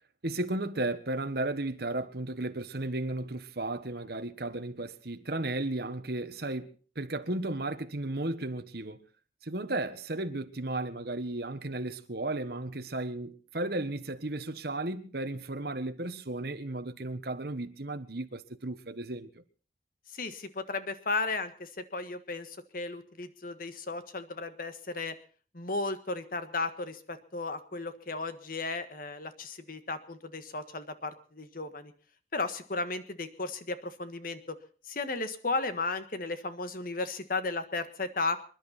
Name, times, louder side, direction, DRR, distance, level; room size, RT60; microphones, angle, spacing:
voice 1, 0.2-9.0 9.4-19.4, right 2 dB, 55° right, 1.4 m, -34 dB
voice 2, 20.1-25.1 25.5-31.9 32.3-34.6 34.8-38.4, left 3 dB, 50° left, 1.5 m, -35 dB
27.0 x 11.0 x 4.3 m
head